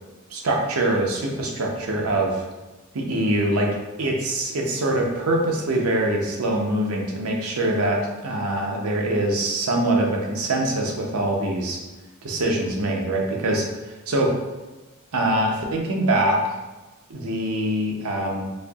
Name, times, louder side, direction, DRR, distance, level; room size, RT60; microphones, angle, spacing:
voice 1, 0.3-2.4 2.9-3.7 4.0-11.8 12.2-13.7 14.1-14.3 15.1-16.4 17.1-18.5, right 1 dB, 85° right, 0 dB, 0.7 m, -23 dB
4.2 x 2.8 x 2.3 m, 1.1 s
head